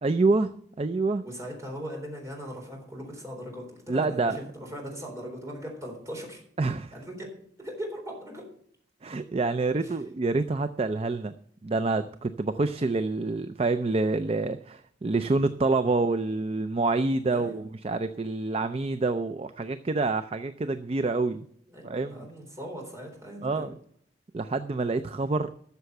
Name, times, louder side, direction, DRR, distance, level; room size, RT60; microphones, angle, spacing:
voice 1, 0.0-0.5 0.8-1.2 3.9-4.4 6.6-6.9 9.0-11.3 11.6-21.5 21.8-22.2 23.4-23.8 24.3-25.5, right 3 dB, 30° right, 11 dB, 0.4 m, -27 dB
voice 2, 1.2-6.4 6.9-7.3 7.6-8.5 9.8-10.0 17.3-17.7 21.7-23.7, equal, 15° right, 0 dB, 3.8 m, -39 dB
13.0 x 6.9 x 6.6 m, 0.63 s
head